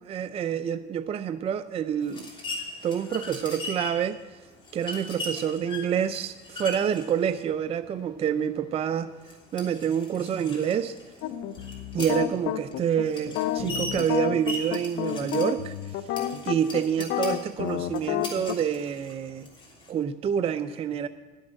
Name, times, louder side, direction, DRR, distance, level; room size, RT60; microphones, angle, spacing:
voice 1, 0.1-2.3 2.8-4.2 4.7-9.1 9.5-11.0 11.9-16.0 16.5-19.5 19.9-21.1, right 8 dB, 30° right, 11 dB, 0.4 m, -27 dB
sound 1, 2.0-19.9, left 2 dB, 25° left, 3.1 m, -40 dB
sound 2, 11.2-18.6, left 11 dB, 70° left, 0.7 m, -30 dB
11.5 x 6.4 x 8.4 m, 1.3 s
supercardioid pair, 110°, 19 cm